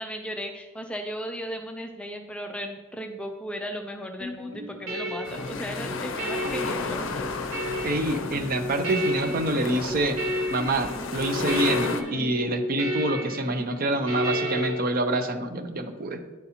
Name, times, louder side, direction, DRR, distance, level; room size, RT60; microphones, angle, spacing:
voice 1, 0.0-7.3 7.7-8.1, equal, 5° left, 4 dB, 0.3 m, -36 dB
sound 1, 4.2-14.7, equal, 80° right, 1.7 m, -32 dB
sound 2, 5.2-12.0, left 4 dB, 65° left, 0.5 m, -33 dB
voice 2, 7.8-10.2 10.5-16.2, right 1 dB, 45° right, 7 dB, 0.6 m, -26 dB
10.5 x 4.1 x 2.8 m, 1.2 s
head